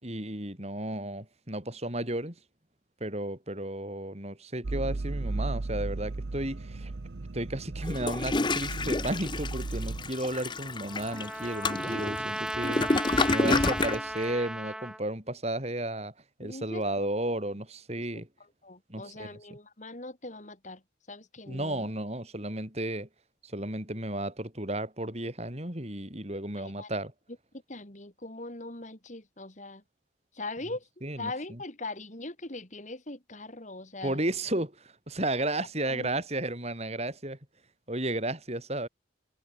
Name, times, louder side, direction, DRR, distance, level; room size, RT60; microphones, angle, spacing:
voice 1, 0.0-2.3 3.0-6.9 7.3-12.9 13.3-16.1 16.4-18.3 18.9-19.6 21.5-23.1 23.4-27.1 31.0-31.6 34.0-37.4 37.9-38.9, right 1 dB, 35° right, 5.2 m, -33 dB
sound 1, 4.6-10.1, right 2 dB, 65° right, 0.8 m, -35 dB
Toilet flush, 7.8-14.0, left 3 dB, 25° left, 0.8 m, -29 dB
Trumpet, 10.3-15.0, right 1 dB, 5° right, 1.6 m, -36 dB
voice 2, 16.4-17.1 18.6-20.8 21.1-21.9 26.6-26.9 27.7-29.8 30.3-30.9 31.2-34.2 35.8-36.2, left 2 dB, 40° left, 2.9 m, -41 dB
head